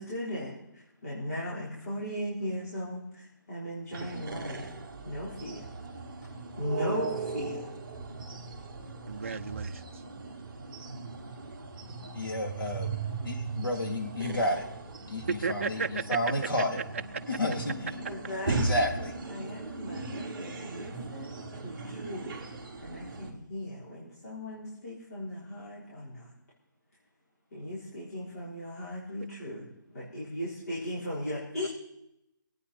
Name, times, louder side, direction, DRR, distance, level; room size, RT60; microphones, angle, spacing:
voice 1, 0.0-4.7 5.0-5.6 6.6-7.7 18.0-18.6 19.3-22.4 22.8-26.3 27.5-31.7, left 1 dB, 45° left, -7 dB, 4.5 m, -37 dB
sound 1, 3.9-23.3, right 4 dB, 15° right, 2.1 m, -38 dB
voice 2, 9.1-9.8 15.3-16.0, right 5 dB, 40° right, 6 dB, 0.5 m, -33 dB
voice 3, 12.1-13.0 13.2-14.7 15.0-16.8 17.3-17.7 18.4-19.1, left 1 dB, 80° left, 3 dB, 3.3 m, -31 dB
24.0 x 9.1 x 4.4 m, 0.82 s
hypercardioid pair, 180°, 11 cm